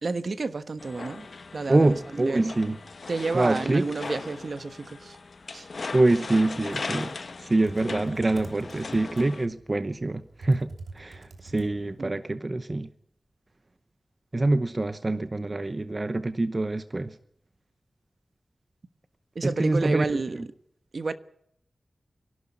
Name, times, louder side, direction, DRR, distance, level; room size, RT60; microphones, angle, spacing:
voice 1, 0.0-1.3 1.5-2.5 3.1-5.2 5.5-5.7 12.0-12.2 19.3-20.4 20.9-21.1, right 3 dB, 50° right, 1.2 m, -30 dB
sound 1, 0.8-9.5, left 4 dB, 55° left, 1.2 m, -39 dB
voice 2, 1.7-2.8 3.3-3.8 5.9-7.1 7.4-12.9 14.3-17.1 19.4-20.0, right 2 dB, 30° right, 0.9 m, -25 dB
Computer keyboard, 6.5-12.1, right 3 dB, 80° right, 2.8 m, -45 dB
24.0 x 12.0 x 9.8 m
wide cardioid pair, 110°, 0 cm